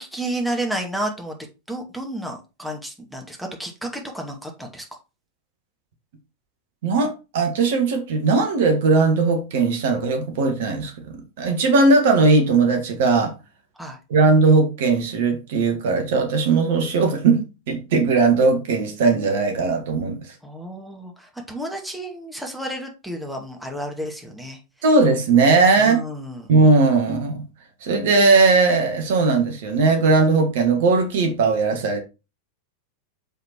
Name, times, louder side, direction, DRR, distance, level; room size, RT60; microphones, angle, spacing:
voice 1, 0.0-1.4 1.7-4.8 13.8-14.0 20.4-24.6 25.8-26.5, right 1 dB, ahead, 2.1 m, -31 dB
voice 2, 6.8-13.3 14.1-20.2 24.8-26.0 26.5-27.4 27.8-32.0, right 3 dB, 55° right, 2.0 m, -18 dB
7.2 x 5.5 x 4.5 m
figure-of-eight pair, 90°, 0 cm